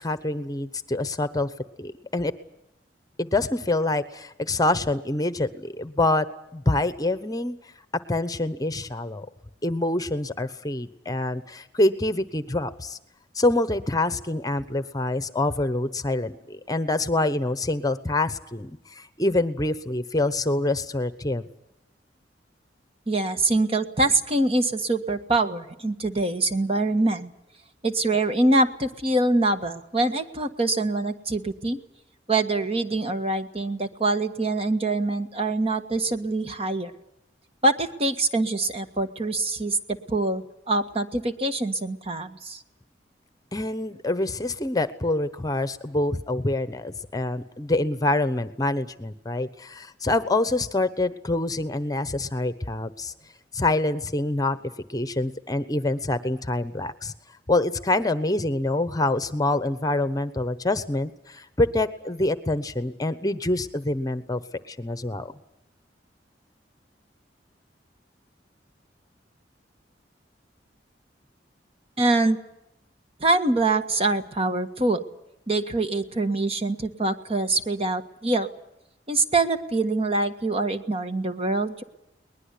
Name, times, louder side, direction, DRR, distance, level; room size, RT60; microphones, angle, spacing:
voice 1, 0.0-1.5 1.8-2.3 3.2-6.3 6.5-7.6 8.1-9.3 9.6-13.0 13.3-21.5 43.5-53.1 53.5-54.6 54.9-57.1 57.5-64.4 64.7-65.3, left 2 dB, 20° left, 13 dB, 1.0 m, -26 dB
voice 2, 23.1-27.3 27.8-31.8 32.3-36.9 37.6-39.8 40.1-42.6 72.0-72.4 73.2-75.0 75.5-78.5 79.1-81.8, right 2 dB, 35° right, 8 dB, 1.6 m, -24 dB
22.0 x 20.5 x 8.4 m, 0.85 s
head